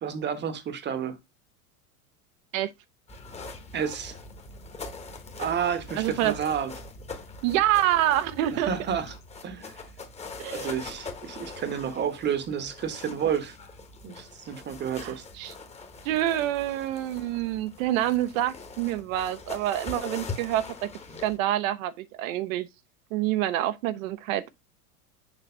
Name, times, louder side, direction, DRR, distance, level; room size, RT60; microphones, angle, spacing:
voice 1, 0.0-1.2 3.7-4.2 5.4-6.7 8.5-9.1 9.4-9.7 10.5-13.6 14.0-15.2, right 8 dB, 25° right, 1.1 m, -30 dB
sound 1, 3.1-21.4, left 3 dB, 15° left, 1.3 m, -42 dB
voice 2, 6.0-6.3 7.4-8.7 10.4-10.7 15.0-15.5 16.0-20.9 21.2-22.7 23.1-24.5, right 13 dB, 60° right, 1.0 m, -27 dB
7.2 x 2.9 x 5.5 m
supercardioid pair, 125°, 45 cm